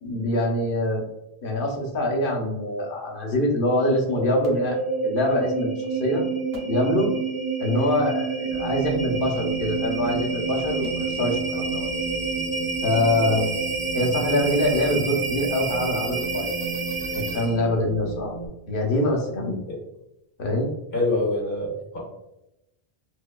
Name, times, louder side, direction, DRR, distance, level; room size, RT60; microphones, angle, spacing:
voice 1, 0.0-1.0 1.4-6.2 6.7-7.1 7.6-11.9 12.8-13.5 13.9-16.5 17.1-18.3 18.7-19.6 20.4-20.7, left 1 dB, 60° left, 1 dB, 0.9 m, -24 dB
sound 1, 4.1-17.7, right 4 dB, 40° right, 0.8 m, -28 dB
Wind, 8.5-18.5, right 3 dB, 80° right, 1.3 m, -37 dB
voice 2, 20.9-22.0, left 2 dB, 80° left, -5 dB, 1.9 m, -25 dB
4.4 x 2.2 x 2.2 m, 0.89 s
omnidirectional pair, 1.1 m